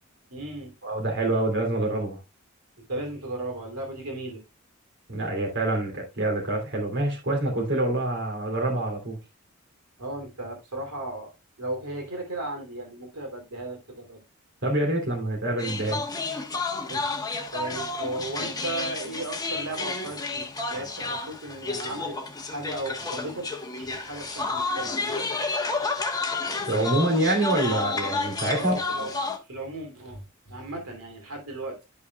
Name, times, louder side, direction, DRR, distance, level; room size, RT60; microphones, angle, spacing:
voice 1, 0.3-0.7 2.9-4.4 10.0-11.3 11.6-14.2 16.9-17.1 17.5-23.5 23.8-25.1 28.6-29.2 29.5-31.8, right 2 dB, 85° right, 2.9 m, -36 dB
voice 2, 0.8-2.2 5.1-9.2 14.6-16.0 26.7-28.8, right 1 dB, 55° right, 3.0 m, -26 dB
sound 1, 15.6-29.4, left 3 dB, 15° left, 1.2 m, -31 dB
12.0 x 5.7 x 2.3 m
head